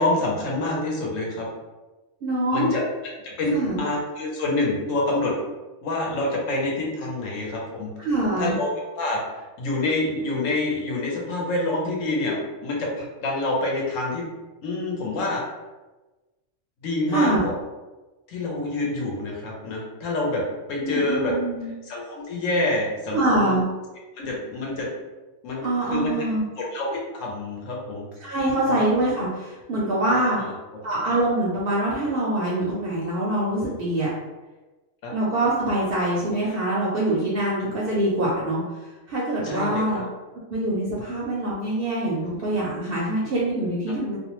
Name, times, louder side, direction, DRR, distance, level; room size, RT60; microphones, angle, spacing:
voice 1, 0.0-1.5 2.5-2.8 3.2-3.5 3.8-5.3 5.8-7.9 8.4-8.7 8.9-14.3 14.6-15.4 16.8-17.5 18.3-20.4 20.7-21.3 21.9-23.6 24.2-24.9 25.4-26.1 26.6-28.0 28.7-28.8 30.3-30.5 35.0-35.1 39.4-40.1, left 2 dB, 70° left, -2 dB, 1.0 m, -27 dB
voice 2, 2.2-2.7 3.5-3.8 8.0-8.5 17.1-17.4 20.8-21.7 23.1-23.6 25.6-26.4 28.2-30.4 30.8-34.1 35.1-38.6 39.1-40.0 40.5-44.2, right 1 dB, 60° right, -5 dB, 0.6 m, -24 dB
2.5 x 2.0 x 2.9 m, 1.2 s
omnidirectional pair, 1.4 m